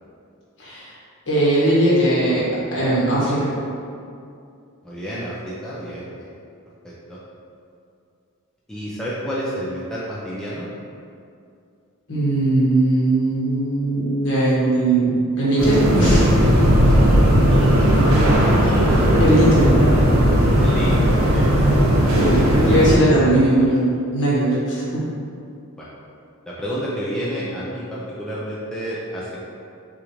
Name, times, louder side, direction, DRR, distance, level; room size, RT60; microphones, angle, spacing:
voice 1, 0.6-0.9 1.3-3.5 12.1-16.3 19.2-19.7 22.1-22.4 22.6-25.1, right 1 dB, 55° left, -8 dB, 1.4 m, -19 dB
voice 2, 4.8-6.3 6.8-7.2 8.7-10.7 17.4-17.7 18.1-18.9 20.6-21.8 25.8-25.9 26.5-29.5, equal, 5° left, -8 dB, 0.5 m, -30 dB
sound 1, 15.6-23.0, equal, 75° right, 0.9 m, -16 dB
6.3 x 2.5 x 3.1 m, 2.4 s
head